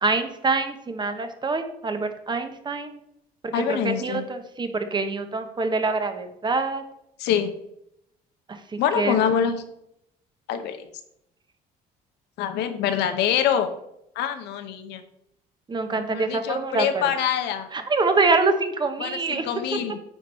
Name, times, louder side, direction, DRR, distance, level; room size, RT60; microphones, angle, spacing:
voice 1, 0.0-3.0 3.5-6.8 8.5-9.1 15.7-17.0 17.7-19.5, right 3 dB, 25° right, 7 dB, 0.9 m, -25 dB
voice 2, 3.5-4.2 7.2-7.5 8.8-9.5 10.5-10.9 12.4-13.7 14.2-15.0 15.9-17.7 19.0-20.0, left 9 dB, 85° left, 8 dB, 0.9 m, -25 dB
9.0 x 4.7 x 4.3 m, 0.78 s
cardioid pair, 110°, 17 cm